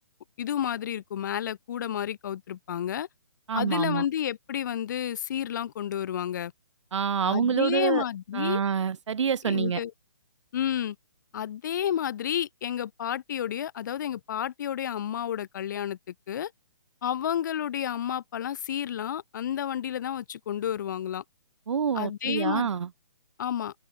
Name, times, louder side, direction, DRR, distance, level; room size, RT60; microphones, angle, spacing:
voice 1, 0.4-3.1 3.5-6.5 7.2-8.6 9.4-9.9 10.5-11.0 11.3-16.0 16.3-16.5 17.0-21.2 21.9-22.7 23.4-23.7, left 10 dB, 40° left, 0.4 m, -31 dB
voice 2, 3.5-4.0 6.9-8.0 8.3-9.8 21.7-22.9, right 7 dB, 75° right, 0.8 m, -27 dB
open air
hypercardioid pair, 155°, 15 cm